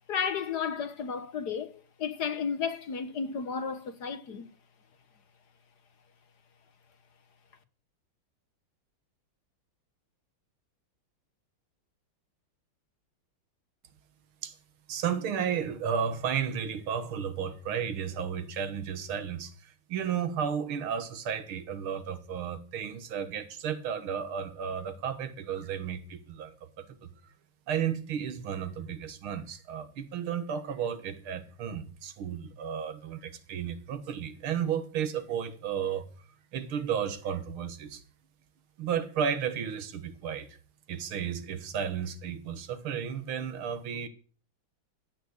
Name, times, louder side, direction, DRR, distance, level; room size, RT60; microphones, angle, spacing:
voice 1, 0.1-4.5, left 6 dB, 55° left, 1.5 m, -33 dB
voice 2, 14.9-27.1 27.7-36.1 36.5-38.0 38.8-40.6 40.9-44.1, right 8 dB, 75° right, 2.2 m, -33 dB
13.0 x 9.1 x 8.1 m
omnidirectional pair, 2.3 m